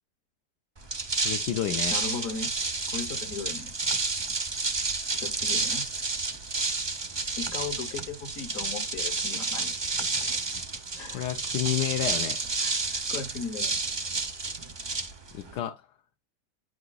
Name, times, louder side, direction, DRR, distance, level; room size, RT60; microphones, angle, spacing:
sound 1, 0.8-15.6, right 3 dB, 40° right, 0.3 m, -30 dB
voice 1, 1.2-1.9 11.1-12.4 15.3-15.9, left 11 dB, 75° left, 1.2 m, -30 dB
voice 2, 1.9-2.5 2.9-3.7 5.2-5.9 7.4-9.7 11.0-11.4 11.6-11.8 12.6-13.8, left 4 dB, 55° left, 1.6 m, -37 dB
9.5 x 5.9 x 2.3 m
omnidirectional pair, 1.8 m